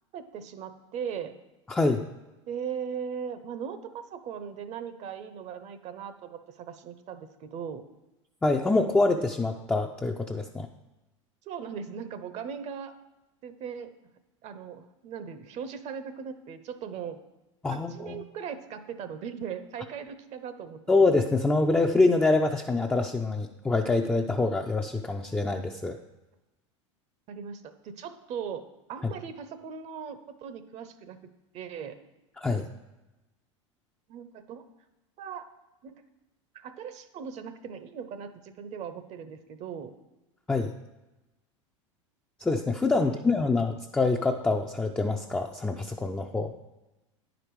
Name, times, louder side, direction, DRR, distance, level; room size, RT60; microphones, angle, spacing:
voice 1, 0.1-1.4 2.5-7.9 11.5-12.9 13.4-13.9 14.4-17.2 17.7-20.9 27.3-31.2 31.5-32.0 34.1-34.6 35.2-35.5 35.8-36.0 36.5-39.9 42.9-43.6, right 7 dB, 45° right, 11 dB, 0.7 m, -39 dB
voice 2, 1.7-2.0 8.4-10.7 17.6-18.2 20.9-26.0 32.4-32.7 40.5-40.7 42.4-46.5, left 3 dB, 10° left, 2 dB, 0.4 m, -25 dB
10.0 x 5.1 x 4.7 m, 1.0 s
hypercardioid pair, 90°, 16 cm